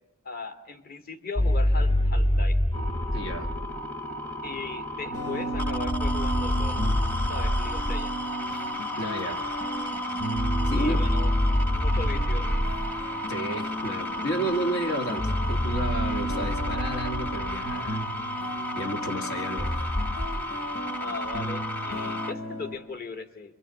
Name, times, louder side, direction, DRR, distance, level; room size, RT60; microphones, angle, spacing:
voice 1, 0.2-2.6 4.4-6.8 7.3-8.2 10.7-11.3 11.8-12.5 21.0-23.6, left 3 dB, 45° left, 6 dB, 2.2 m, -38 dB
sound 1, 1.4-3.7 5.5-8.1 10.3-12.9 15.2-17.8 19.6-20.3, left 1 dB, 30° left, 3.2 m, -26 dB
sound 2, 2.7-22.3, left 1 dB, 10° left, 1.0 m, -34 dB
voice 2, 3.1-3.5 9.0-9.4 10.6-11.0 13.3-18.0 18.3-19.7, right 1 dB, 65° left, 5 dB, 2.0 m, -32 dB
sound 3, 5.1-22.8, right 2 dB, 85° left, 4.4 m, -35 dB
28.5 x 24.0 x 8.4 m, 0.84 s
head